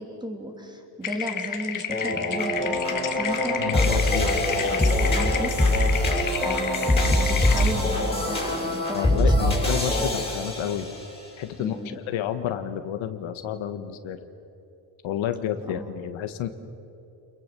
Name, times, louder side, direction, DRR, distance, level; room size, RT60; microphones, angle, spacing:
voice 1, 0.0-4.3 4.7-6.1 6.4-9.5 11.6-11.9 15.7-15.9, equal, 10° right, 3 dB, 3.3 m, -35 dB
sound 1, 1.0-7.7, left 8 dB, 40° left, 1.9 m, -31 dB
sound 2, 1.9-11.1, left 1 dB, 10° left, 5.8 m, -24 dB
voice 2, 3.6-4.3 8.9-10.9 11.4-14.2 15.0-16.5, left 10 dB, 70° left, 9 dB, 1.6 m, -30 dB
28.5 x 22.0 x 7.0 m, 2.9 s
cardioid pair, 130°, 49 cm